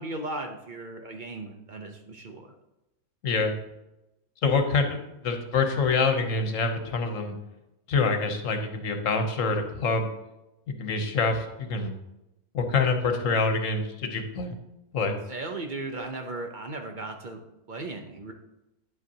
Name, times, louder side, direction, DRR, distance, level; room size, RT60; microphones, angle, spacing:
voice 1, 0.0-2.5 15.3-17.4 17.7-18.3, right 2 dB, 45° right, 4 dB, 0.8 m, -36 dB
voice 2, 3.2-3.6 4.4-7.4 7.9-10.1 10.7-11.9 12.5-14.5 14.9-15.2, left 4 dB, 70° left, 6 dB, 1.3 m, -26 dB
9.6 x 7.9 x 2.8 m, 0.93 s
omnidirectional pair, 1.4 m